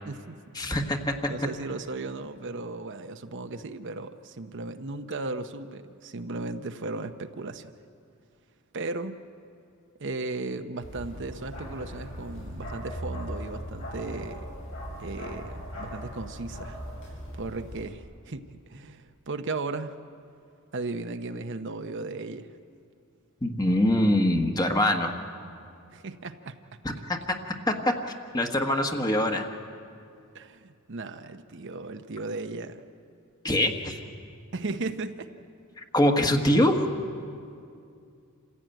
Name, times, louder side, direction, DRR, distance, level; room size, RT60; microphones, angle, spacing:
voice 1, 0.0-0.4 1.2-7.7 8.7-9.2 10.0-14.5 15.0-16.8 17.3-19.9 20.7-22.5 25.9-26.6 30.3-32.8 34.5-35.3, right 3 dB, 60° right, 8 dB, 0.9 m, -36 dB
voice 2, 0.5-1.1 23.4-25.1 27.7-27.8 28.3-29.5 33.4-34.0 35.8-36.8, left 1 dB, 20° left, 4 dB, 1.4 m, -23 dB
Bark, 10.8-17.9, equal, 65° left, 7.6 m, -39 dB
27.5 x 15.5 x 9.1 m, 2.4 s
head